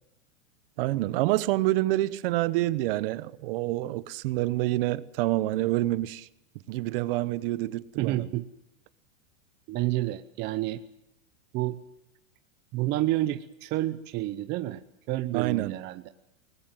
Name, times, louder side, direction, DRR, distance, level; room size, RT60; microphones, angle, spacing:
voice 1, 0.8-6.3 6.7-8.3 15.3-15.7, right 17 dB, 45° right, 1.1 m, -27 dB
voice 2, 8.0-8.5 9.7-10.8 11.5-11.8 12.7-14.8 15.1-16.0, right 16 dB, 25° right, 0.8 m, -29 dB
23.5 x 19.5 x 7.5 m
hypercardioid pair, 150°, 40 cm